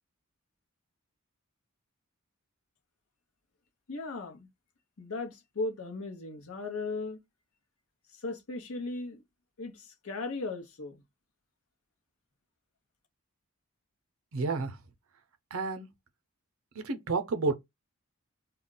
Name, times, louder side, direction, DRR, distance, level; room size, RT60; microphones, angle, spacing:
voice 1, 3.9-4.5 5.0-7.2 8.1-9.2 9.6-11.0, left 3 dB, 75° left, 0.8 m, -37 dB
voice 2, 14.3-14.8 15.5-15.9 16.7-17.5, right 3 dB, 70° right, 0.6 m, -30 dB
2.3 x 2.1 x 3.8 m
head